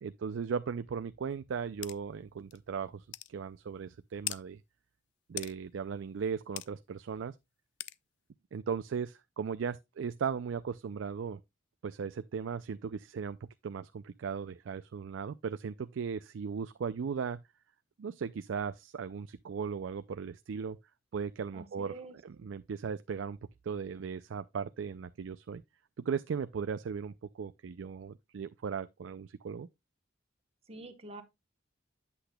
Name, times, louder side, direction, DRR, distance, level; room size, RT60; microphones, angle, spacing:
voice 1, 0.0-4.6 5.3-7.3 8.5-11.4 11.8-13.4 13.6-17.4 18.0-20.8 21.1-21.9 22.2-23.4 23.6-25.6 26.1-29.7, right 6 dB, 80° right, 0.4 m, -37 dB
sound 1, 1.8-2.0 2.5-2.6 3.1-3.3 4.3-4.4 5.4-5.5 6.6-6.7 7.8-8.0, left 16 dB, 65° left, 0.3 m, -38 dB
voice 2, 21.5-22.2 30.7-31.2, right 2 dB, 35° right, 1.1 m, -46 dB
8.4 x 7.9 x 2.2 m
head